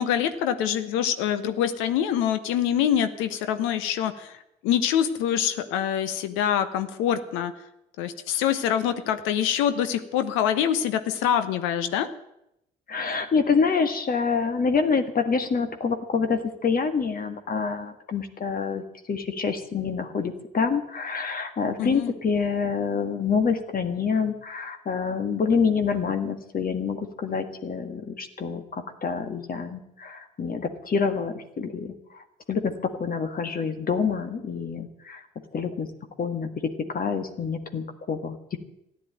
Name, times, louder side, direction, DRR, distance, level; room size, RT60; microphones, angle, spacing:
voice 1, 0.0-7.5 8.0-12.1 21.8-22.1, left 9 dB, 75° left, 11 dB, 1.0 m, -25 dB
voice 2, 12.9-32.2 32.5-35.2 35.5-35.9 36.2-38.6, left 5 dB, 45° left, 8 dB, 1.8 m, -27 dB
14.0 x 10.0 x 9.0 m, 0.83 s
hypercardioid pair, 50°, 20 cm